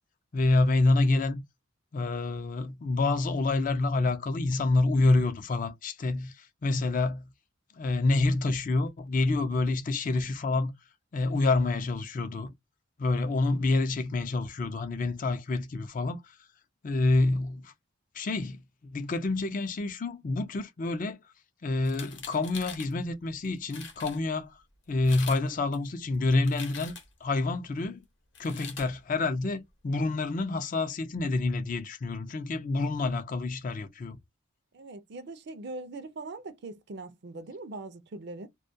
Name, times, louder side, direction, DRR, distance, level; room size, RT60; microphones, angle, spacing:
voice 1, 0.3-1.4 1.9-7.3 7.7-10.7 11.1-12.5 13.0-16.4 16.8-17.7 18.1-21.2 21.6-24.6 24.9-26.9 27.2-28.0 28.4-34.2, left 2 dB, 40° left, 0.4 m, -27 dB
sound 1, 21.8-22.9 23.4-23.5 23.7-24.2 24.9-25.4 25.7-27.2 28.3-28.9, left 6 dB, 55° left, 0.8 m, -43 dB
voice 2, 34.7-38.5, right 2 dB, 50° right, 0.4 m, -41 dB
2.2 x 2.2 x 2.6 m
head